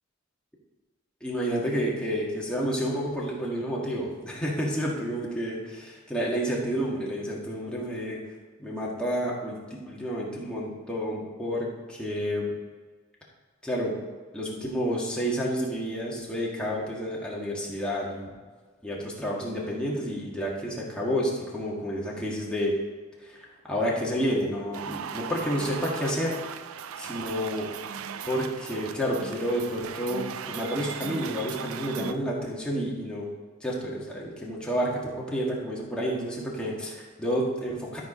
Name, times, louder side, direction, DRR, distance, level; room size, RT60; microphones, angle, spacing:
voice 1, 1.2-8.2 8.6-12.5 13.6-13.9 14.3-18.3 18.8-22.7 23.2-27.7 28.2-33.3 33.6-38.0, equal, 5° left, -5 dB, 1.7 m, -30 dB
sound 1, 24.7-32.1, right 7 dB, 85° right, 0.4 m, -38 dB
12.5 x 4.7 x 5.4 m, 1.4 s
head